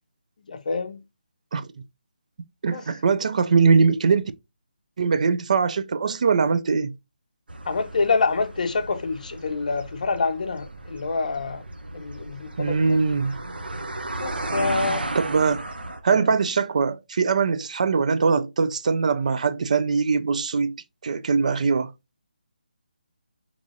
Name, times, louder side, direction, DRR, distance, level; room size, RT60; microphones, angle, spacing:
voice 1, 0.5-1.0 2.6-2.8 7.7-11.6 11.9-13.0 14.2-15.1 16.1-16.3, left 4 dB, 55° left, 0.6 m, -26 dB
voice 2, 2.6-4.3 5.0-6.9 12.6-13.4 15.1-15.7 16.0-20.8 21.0-21.9, right 5 dB, 50° right, 0.3 m, -22 dB
sound 1, 7.5-16.0, right 2 dB, 85° right, 0.7 m, -34 dB
3.8 x 3.0 x 2.5 m
figure-of-eight pair, 155°, 5 cm